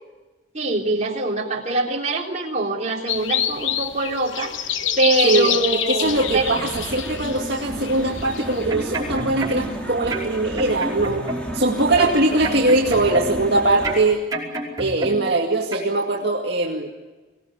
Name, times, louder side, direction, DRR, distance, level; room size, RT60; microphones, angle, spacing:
voice 1, 0.5-6.6, right 2 dB, 35° right, -1 dB, 3.7 m, -24 dB
sound 1, 3.1-8.7, left 10 dB, 65° left, 1.0 m, -27 dB
voice 2, 5.2-5.6 5.9-11.2 11.5-14.2 14.8-16.9, right 2 dB, 55° right, -1 dB, 2.2 m, -21 dB
sound 2, 6.0-14.1, equal, 5° left, 3.4 m, -33 dB
sound 3, 8.5-9.8 10.1-11.6 12.0-13.5 13.8-15.4 15.7-15.9, right 2 dB, 20° right, 5.3 m, -30 dB
24.5 x 18.5 x 8.8 m, 1.2 s
head